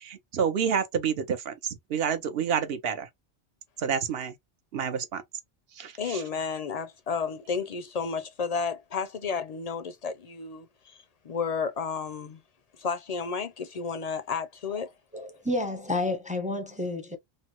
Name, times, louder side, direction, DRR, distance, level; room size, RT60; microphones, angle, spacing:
voice 1, 0.0-3.1 3.8-4.3 4.7-5.2 5.8-6.2, right 7 dB, 65° right, 0.8 m, -29 dB
voice 2, 6.0-12.4 12.8-14.9, left 5 dB, 50° left, 0.5 m, -32 dB
voice 3, 15.1-17.2, left 2 dB, 10° right, 0.5 m, -30 dB
3.3 x 2.1 x 2.9 m
omnidirectional pair, 1.1 m